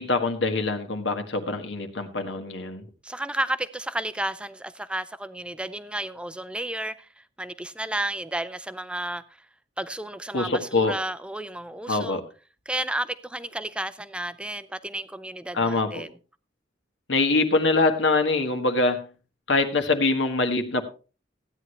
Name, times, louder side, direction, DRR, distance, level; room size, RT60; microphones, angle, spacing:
voice 1, 0.0-2.8 10.3-11.0 11.9-12.2 15.5-16.0 17.1-19.1 19.5-20.8, left 3 dB, 75° left, 1.7 m, -24 dB
voice 2, 3.0-9.2 9.8-12.2 12.7-16.2, right 1 dB, 5° right, 0.6 m, -32 dB
15.0 x 9.8 x 3.3 m
head